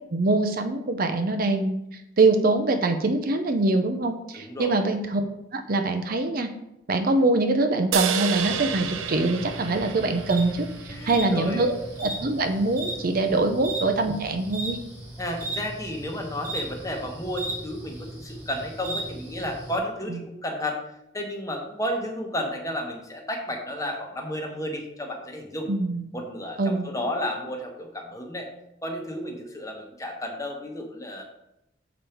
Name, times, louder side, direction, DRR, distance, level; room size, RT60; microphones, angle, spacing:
voice 1, 0.1-5.2 5.5-6.5 6.9-11.7 12.0-14.8 20.1-20.2 25.7-26.0 26.6-26.9, right 2 dB, 45° right, 7 dB, 0.6 m, -24 dB
voice 2, 4.3-4.9 10.9-11.7 13.3-13.5 15.2-20.8 21.1-25.7 26.1-28.5 28.8-31.2, left 1 dB, 15° left, 2 dB, 1.1 m, -32 dB
sound 1, 7.9-11.4, right 8 dB, 90° right, 0.6 m, -30 dB
sound 2, 8.3-19.8, right 1 dB, 15° right, 1.9 m, -37 dB
7.0 x 5.1 x 4.4 m, 0.85 s
head